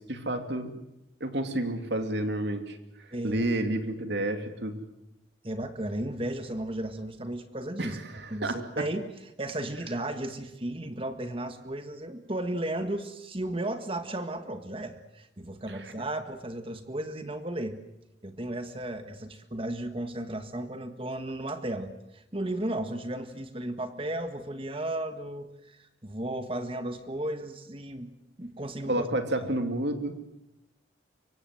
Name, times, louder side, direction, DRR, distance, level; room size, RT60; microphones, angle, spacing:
voice 1, 0.1-0.8 1.2-2.8 3.2-4.8 7.8-8.6 15.7-15.9 28.9-30.1, right 1 dB, 65° right, 7 dB, 2.9 m, -30 dB
voice 2, 3.1-3.5 5.4-8.0 8.3-9.1 9.4-17.8 18.2-28.1 28.4-29.1 29.4-29.5, right 1 dB, 30° right, 8 dB, 1.7 m, -34 dB
25.0 x 24.5 x 7.9 m, 0.87 s
head